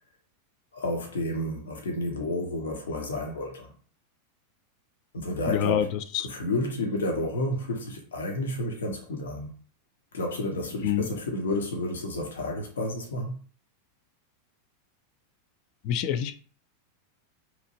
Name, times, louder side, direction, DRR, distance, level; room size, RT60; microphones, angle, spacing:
voice 1, 0.7-3.7 5.1-5.9 6.3-9.5 10.1-13.3, left 1 dB, 75° left, 0.7 m, -31 dB
voice 2, 5.5-6.3 10.8-11.1 15.8-16.3, left 10 dB, 50° left, 0.4 m, -26 dB
2.9 x 2.4 x 2.7 m
figure-of-eight pair, 90°, 0 cm